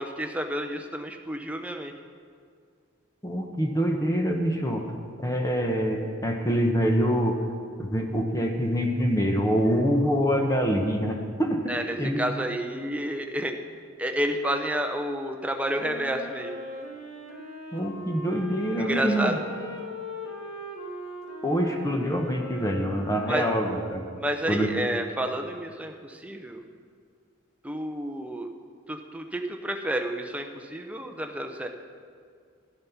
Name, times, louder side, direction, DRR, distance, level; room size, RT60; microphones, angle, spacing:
voice 1, 0.0-1.9 11.7-13.5 14.0-16.5 18.8-19.3 23.3-23.5 24.2-26.6 27.6-28.5 28.9-31.7, right 1 dB, 5° right, 4 dB, 0.7 m, -30 dB
voice 2, 3.2-4.9 5.2-7.4 7.8-12.2 17.7-19.4 21.4-24.0 24.5-24.8, equal, 15° left, 3 dB, 1.0 m, -25 dB
Wind instrument woodwind instrument, 15.8-24.1, left 1 dB, 70° left, 1.7 m, -39 dB
11.5 x 11.0 x 5.8 m, 2.1 s
head